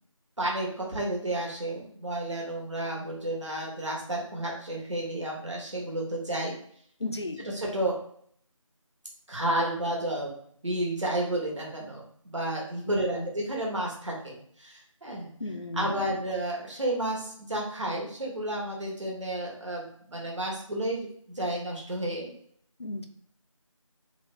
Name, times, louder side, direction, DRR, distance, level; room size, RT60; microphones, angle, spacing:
voice 1, 0.4-6.5 7.4-8.0 9.3-10.3 10.6-15.3 15.7-22.3, right 1 dB, 60° right, -2 dB, 1.3 m, -31 dB
voice 2, 7.0-7.4 12.9-13.3 15.4-16.0 22.8-23.1, left 2 dB, 50° left, 6 dB, 0.4 m, -34 dB
3.2 x 2.1 x 3.3 m, 0.63 s
figure-of-eight pair, 175°, 17 cm